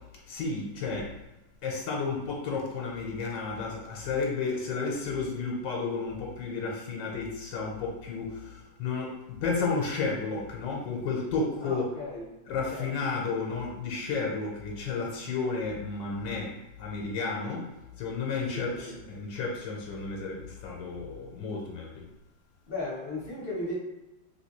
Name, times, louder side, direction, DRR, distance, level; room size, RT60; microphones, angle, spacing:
voice 1, 0.3-1.1 1.6-11.9 12.5-16.5 16.8-22.0, left 4 dB, 80° left, -1 dB, 1.3 m, -32 dB
voice 2, 11.6-12.2 12.7-12.9 18.5-19.0 22.7-23.7, left 2 dB, 45° left, -5 dB, 0.7 m, -36 dB
3.2 x 2.9 x 2.9 m, 0.95 s
omnidirectional pair, 2.0 m